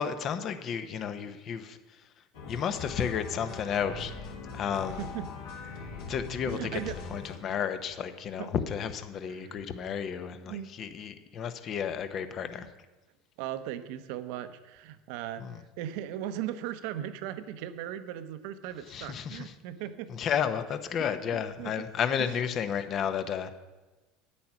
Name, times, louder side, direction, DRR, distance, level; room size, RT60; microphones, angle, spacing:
voice 1, 0.0-1.8 2.5-4.1 4.5-5.0 6.1-6.8 7.1-12.7 15.4-15.5 18.9-19.5 20.1-23.5, left 8 dB, 45° left, 10 dB, 1.0 m, -32 dB
sound 1, 2.3-7.4, left 4 dB, 65° left, 2.9 m, -41 dB
voice 2, 4.9-5.3 6.4-7.0 8.4-8.5 9.3-9.6 10.5-10.7 13.4-15.5 15.8-20.1 21.0-21.9 22.2-22.3, right 11 dB, 65° right, 11 dB, 0.8 m, -38 dB
9.7 x 8.5 x 5.9 m, 1.2 s
hypercardioid pair, 75°, 0 cm